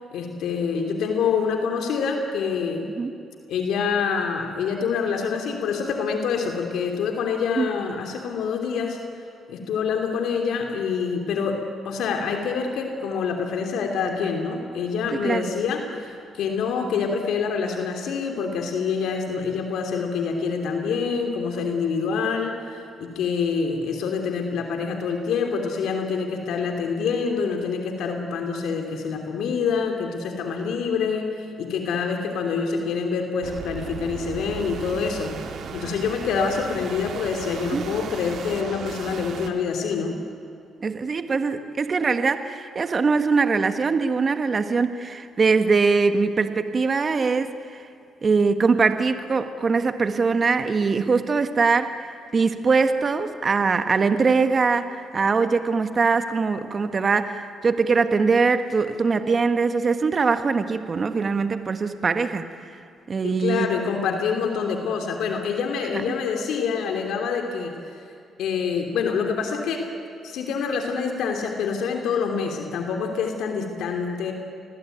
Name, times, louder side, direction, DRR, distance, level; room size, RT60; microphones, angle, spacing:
voice 1, 0.1-2.9 3.5-9.0 9.5-35.3 35.7-40.1 63.4-68.0 68.4-69.9 70.2-74.3, left 5 dB, 80° left, 4 dB, 3.2 m, -26 dB
voice 2, 15.1-15.5 37.7-37.8 40.8-47.8 48.2-62.7 63.1-63.7 65.9-66.0, right 4 dB, 40° right, 9 dB, 1.5 m, -22 dB
sound 1, 33.4-39.5, right 6 dB, 65° right, 2.5 m, -36 dB
27.5 x 21.0 x 9.4 m, 2.5 s
cardioid pair, 90°, 0 cm